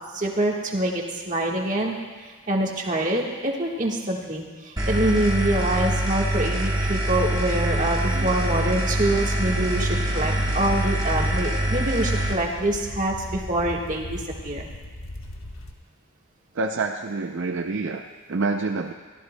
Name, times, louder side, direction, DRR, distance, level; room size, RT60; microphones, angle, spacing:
voice 1, 0.1-14.7, right 1 dB, 35° right, -1 dB, 1.5 m, -25 dB
sound 1, 4.8-12.3, right 1 dB, 15° right, 1.1 m, -24 dB
sound 2, 7.7-15.7, left 1 dB, 60° left, 1.2 m, -39 dB
voice 2, 16.6-18.0 18.3-18.9, right 3 dB, 55° right, 4 dB, 0.5 m, -27 dB
23.5 x 14.0 x 2.2 m, 1.5 s
head